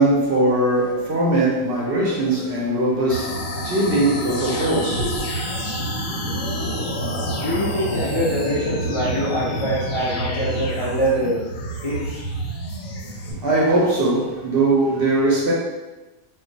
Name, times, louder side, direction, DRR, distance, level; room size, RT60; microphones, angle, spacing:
voice 1, 0.0-5.2 13.2-15.5, right 2 dB, 55° right, -4 dB, 0.7 m, -20 dB
sound 1, 3.1-13.3, equal, 80° left, 1.0 m, -28 dB
voice 2, 7.4-11.4 11.8-12.2, equal, 50° left, -8 dB, 0.3 m, -24 dB
2.3 x 2.3 x 3.8 m, 1.1 s
omnidirectional pair, 1.4 m